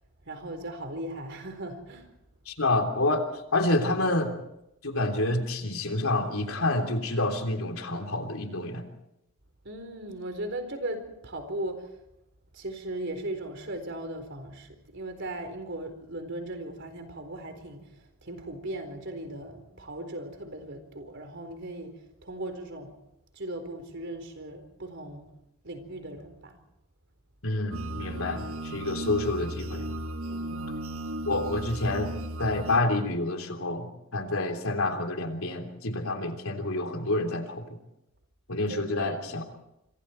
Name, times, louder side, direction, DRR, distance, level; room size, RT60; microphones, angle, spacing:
voice 1, 0.3-2.1 9.6-11.9 12.5-17.9 18.2-21.9 22.2-23.0 23.3-25.3 25.6-26.6 30.3-30.7 38.7-39.2, right 1 dB, 60° right, 7 dB, 4.3 m, -38 dB
voice 2, 2.5-3.2 3.5-4.3 4.8-8.8 27.4-29.9 31.3-32.1 32.4-37.6 38.5-39.5, left 2 dB, 80° left, 5 dB, 3.3 m, -28 dB
sound 1, 27.7-32.8, right 1 dB, 80° right, 1.5 m, -35 dB
26.5 x 26.0 x 4.6 m, 0.85 s
head